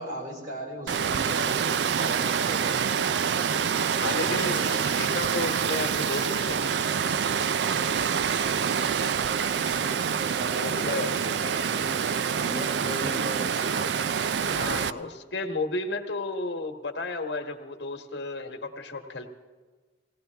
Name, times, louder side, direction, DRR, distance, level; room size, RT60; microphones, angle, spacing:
voice 1, 0.0-3.0 10.4-11.9 12.4-15.0, right 1 dB, 50° right, -1 dB, 5.0 m, -38 dB
Water, 0.9-14.9, right 7 dB, 70° right, 0.4 m, -26 dB
voice 2, 4.0-6.7 10.6-11.1 14.4-19.3, left 3 dB, 80° left, 4 dB, 1.3 m, -33 dB
sound 1, 4.4-4.9 5.5-6.8 7.3-7.7 8.0-8.4 8.7-8.9 9.3-9.8 10.1-10.7 11.9-12.2, right 2 dB, 90° right, 2.7 m, -44 dB
18.5 x 17.0 x 3.4 m, 1.4 s
head